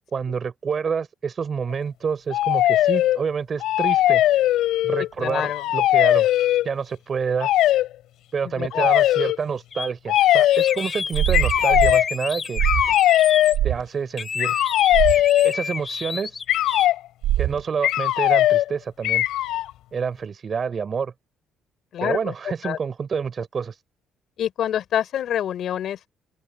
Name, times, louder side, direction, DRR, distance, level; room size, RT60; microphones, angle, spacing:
voice 1, 0.1-4.2 4.8-6.3 6.6-7.5 8.3-12.6 13.6-14.6 15.4-16.4 17.4-19.2 19.9-21.1 22.0-23.8, right 6 dB, 35° right, 4.7 m, -28 dB
sound 1, 2.3-3.2 3.6-5.1 5.4-6.7 7.4-7.9 8.7-9.4 10.1-10.8 11.3-12.1 12.6-13.6 14.4-15.6 16.5-17.0 17.8-18.7 19.0-19.7, left 14 dB, 85° left, 4.4 m, -19 dB
voice 2, 5.2-5.7 8.4-8.9 21.9-22.3 22.6-22.8 24.4-26.1, left 10 dB, 60° left, 4.4 m, -26 dB
sound 2, 9.7-9.9 10.2-13.6 14.2-16.9, left 5 dB, 30° left, 6.6 m, -30 dB
sound 3, 11.1-12.0 12.6-12.9 13.5-13.8 14.9-15.2 17.2-17.6, right 13 dB, 80° right, 6.6 m, -22 dB
open air
cardioid pair, 135°, 0 cm